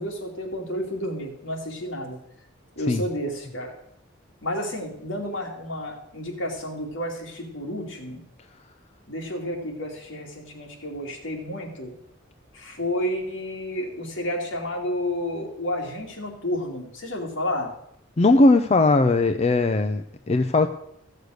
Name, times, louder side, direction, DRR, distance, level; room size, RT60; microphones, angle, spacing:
voice 1, 0.0-2.2 2.8-3.7 4.4-8.2 9.1-11.9 12.5-17.7, left 1 dB, 70° left, 1 dB, 2.8 m, -31 dB
voice 2, 18.2-20.7, left 2 dB, 35° left, 8 dB, 0.5 m, -19 dB
14.5 x 6.6 x 6.5 m, 0.76 s
head